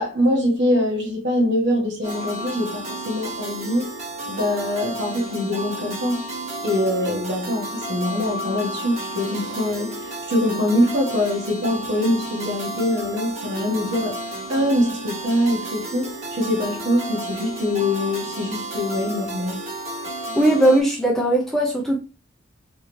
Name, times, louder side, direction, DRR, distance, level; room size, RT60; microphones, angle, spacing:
voice 1, 0.0-3.9 4.2-6.2 6.6-14.2 14.5-19.6, left 1 dB, 55° right, 1.4 m, -23 dB
sound 1, 2.0-20.8, right 1 dB, 35° right, 1.2 m, -32 dB
voice 2, 20.4-22.0, right 1 dB, ahead, 0.6 m, -18 dB
3.5 x 3.3 x 3.1 m
head